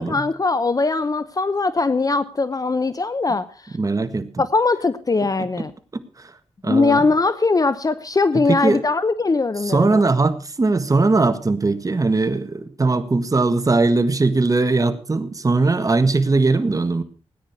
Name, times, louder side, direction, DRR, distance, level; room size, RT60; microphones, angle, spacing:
voice 1, 0.1-3.8 4.4-5.7 6.6-10.0, left 3 dB, 35° left, 14 dB, 0.8 m, -20 dB
voice 2, 3.8-4.3 6.2-6.3 6.6-7.0 8.3-8.8 9.6-17.0, right 3 dB, 30° right, 10 dB, 1.6 m, -20 dB
17.5 x 10.0 x 5.9 m, 0.38 s
cardioid pair, 80°, 11 cm